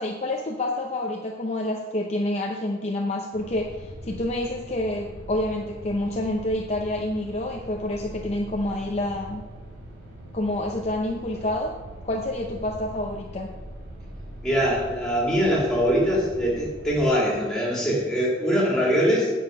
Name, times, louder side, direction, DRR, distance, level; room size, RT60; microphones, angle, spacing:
voice 1, 0.0-9.4 10.3-11.7 12.0-13.5, left 1 dB, 35° left, 1 dB, 0.6 m, -28 dB
sound 1, 3.3-17.0, right 1 dB, 60° right, 2.9 m, -41 dB
voice 2, 14.4-19.3, equal, 5° left, -5 dB, 2.8 m, -22 dB
9.0 x 6.6 x 5.3 m, 1.3 s
head